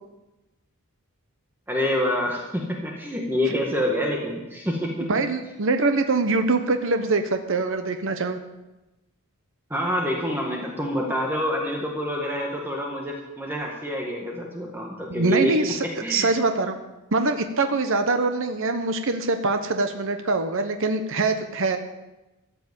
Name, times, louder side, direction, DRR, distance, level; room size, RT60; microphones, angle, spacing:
voice 1, 1.7-5.1 9.7-15.6 15.8-16.3, equal, 10° right, -1 dB, 1.8 m, -27 dB
voice 2, 5.1-8.4 15.1-15.8 16.1-16.7 17.1-21.8, right 3 dB, 60° right, 7 dB, 1.0 m, -23 dB
14.5 x 8.2 x 8.2 m, 1.0 s
head